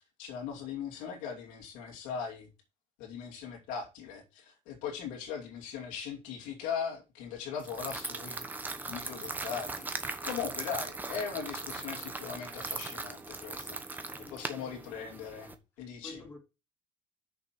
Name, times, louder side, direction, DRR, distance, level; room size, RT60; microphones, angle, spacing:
voice 1, 0.2-2.5 3.0-8.4 8.9-13.8 14.3-16.2, left 7 dB, 90° left, 2.7 m, -39 dB
sound 1, 7.6-15.5, right 3 dB, 15° right, 1.1 m, -39 dB
voice 2, 14.0-14.7 16.0-16.4, left 2 dB, 15° left, 2.7 m, -50 dB
6.4 x 5.9 x 6.0 m
cardioid pair, 125°, 13 cm